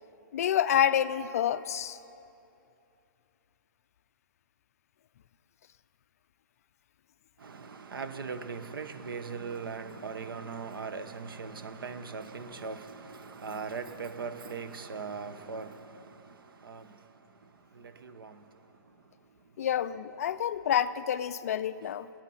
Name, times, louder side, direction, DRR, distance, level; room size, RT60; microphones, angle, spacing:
voice 1, 0.3-2.0 19.6-22.1, left 9 dB, 45° left, 14 dB, 0.4 m, -28 dB
voice 2, 7.4-16.1 16.6-16.9 17.7-18.4, right 5 dB, 85° right, 10 dB, 1.0 m, -39 dB
20.0 x 9.0 x 5.6 m, 2.7 s
hypercardioid pair, 165°, 11 cm